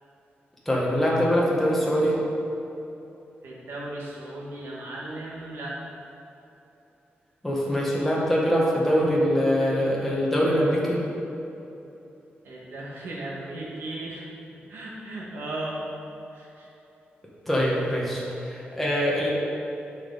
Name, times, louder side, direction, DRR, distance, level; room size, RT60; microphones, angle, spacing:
voice 1, 0.6-2.2 7.4-11.0 17.5-19.3, equal, 5° left, -6 dB, 1.3 m, -23 dB
voice 2, 3.4-5.8 12.4-14.3 14.7-15.9 16.3-16.7, right 2 dB, 75° right, -4 dB, 1.8 m, -36 dB
10.5 x 5.3 x 4.1 m, 3.0 s
wide cardioid pair, 175°, 4 cm